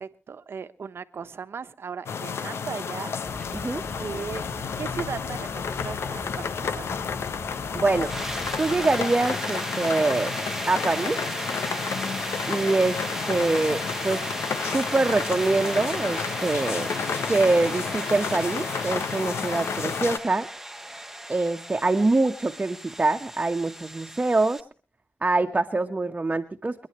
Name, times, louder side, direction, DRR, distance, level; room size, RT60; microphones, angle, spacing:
voice 1, 0.0-3.2 4.0-4.4 4.8-7.0, right 6 dB, 70° right, 11 dB, 1.1 m, -37 dB
sound 1, 2.1-20.2, left 6 dB, 80° left, 0.9 m, -31 dB
sound 2, 3.2-9.3, left 1 dB, 15° left, 6.0 m, -41 dB
voice 2, 7.7-8.1 8.6-10.3 10.7-11.2 12.5-13.0 13.3-14.3 14.7-16.9 17.3-20.5 21.3-24.6 25.2-26.9, right 2 dB, 30° right, 4 dB, 1.3 m, -24 dB
sound 3, 7.9-24.6, right 1 dB, 5° right, 1.2 m, -35 dB
30.0 x 10.5 x 3.2 m, 0.34 s
cardioid pair, 65°, 4 cm